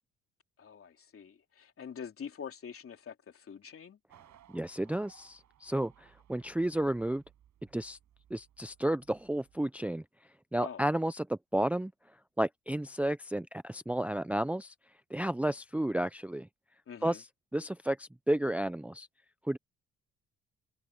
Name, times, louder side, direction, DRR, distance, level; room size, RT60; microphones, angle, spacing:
voice 1, 0.6-4.0 10.5-10.8 16.9-17.2, left 7 dB, 45° left, 3.1 m, -45 dB
sound 1, 4.1-9.6, right 11 dB, 70° right, 6.8 m, -62 dB
voice 2, 4.5-7.2 7.7-8.0 8.3-10.0 10.5-11.9 12.4-14.7 15.1-16.5 17.0-17.2 17.5-19.1 19.4-19.6, right 1 dB, 5° right, 0.6 m, -32 dB
cardioid pair, 90°, 30 cm